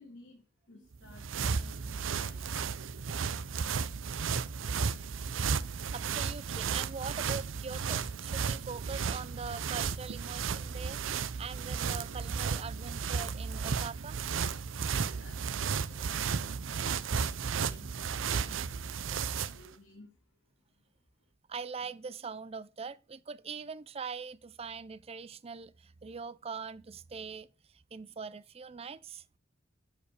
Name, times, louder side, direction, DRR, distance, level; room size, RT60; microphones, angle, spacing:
voice 1, 0.0-3.7 10.9-11.0 11.3-11.4 14.8-17.1 17.5-20.9 21.2-21.3, left 2 dB, 70° left, 3.0 m, -58 dB
sound 1, 0.9-19.7, right 6 dB, 80° right, 0.6 m, -34 dB
voice 2, 5.9-14.2 17.8-17.9 21.5-29.2, right 5 dB, 30° right, 0.5 m, -42 dB
11.5 x 5.1 x 4.9 m
head